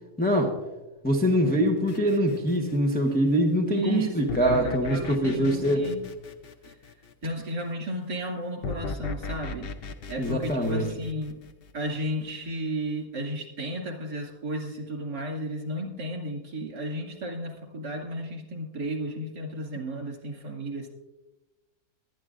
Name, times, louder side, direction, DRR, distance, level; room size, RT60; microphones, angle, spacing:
voice 1, 0.2-0.6 1.0-5.9 10.2-10.9, equal, 5° left, 0 dB, 0.8 m, -24 dB
sound 1, 1.9-3.1 4.3-7.3 8.6-11.8, left 4 dB, 55° left, 0.7 m, -37 dB
voice 2, 3.7-6.0 7.2-9.7 10.1-11.4 11.7-20.9, right 1 dB, 80° right, 0 dB, 3.0 m, -33 dB
21.5 x 10.0 x 2.5 m, 1.1 s
omnidirectional pair, 1.7 m